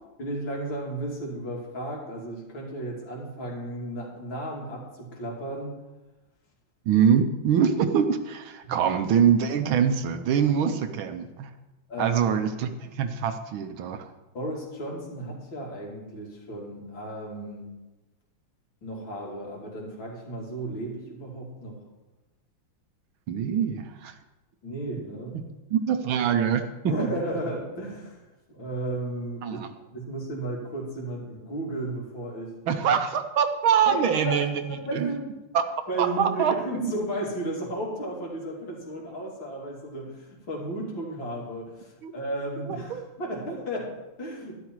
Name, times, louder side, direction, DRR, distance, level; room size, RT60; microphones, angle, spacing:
voice 1, 0.2-5.8 8.6-8.8 11.9-12.2 14.3-17.7 18.8-21.8 24.6-25.4 26.8-29.6 29.9-32.6 33.9-35.3 35.9-44.6, right 1 dB, 60° left, -2 dB, 3.5 m, -34 dB
voice 2, 6.9-11.5 12.0-14.1 23.3-24.1 25.3-25.4 25.7-26.9 29.4-29.7 32.7-34.6 34.9-35.1 35.5-35.6 36.0-36.9 42.0-42.1 42.7-43.0, right 8 dB, 70° right, 8 dB, 1.6 m, -24 dB
12.0 x 11.5 x 4.6 m, 1.1 s
omnidirectional pair, 2.4 m